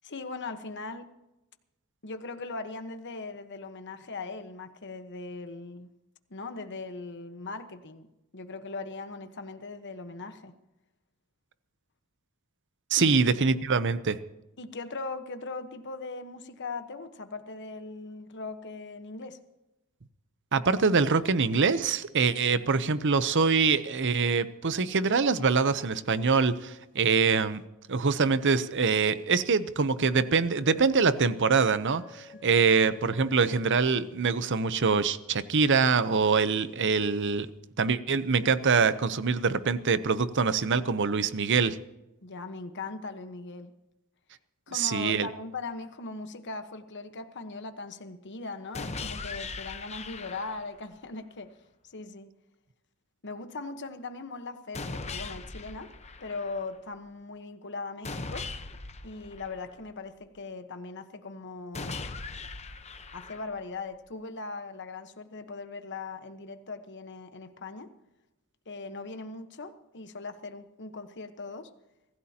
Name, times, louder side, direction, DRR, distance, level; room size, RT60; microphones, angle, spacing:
voice 1, 0.0-1.1 2.0-5.9 6.3-8.1 8.3-10.5 13.0-13.1 14.6-19.4 32.5-32.7 42.2-43.7 44.7-51.5 51.8-52.3 53.2-55.9 56.2-58.5 59.0-62.0 63.1-67.9 68.7-71.7, left 3 dB, 55° left, 8 dB, 1.2 m, -39 dB
voice 2, 12.9-14.2 20.5-27.6 27.9-37.5 37.8-41.8 44.7-45.3, right 5 dB, 55° right, 13 dB, 0.8 m, -24 dB
Wind instrument woodwind instrument, 30.0-34.6, left 5 dB, 5° right, 5.6 m, -53 dB
sound 1, 48.7-50.8 54.7-56.8 58.0-60.1 61.7-63.8, left 3 dB, 30° left, 1.0 m, -39 dB
25.0 x 15.5 x 2.9 m, 0.96 s
head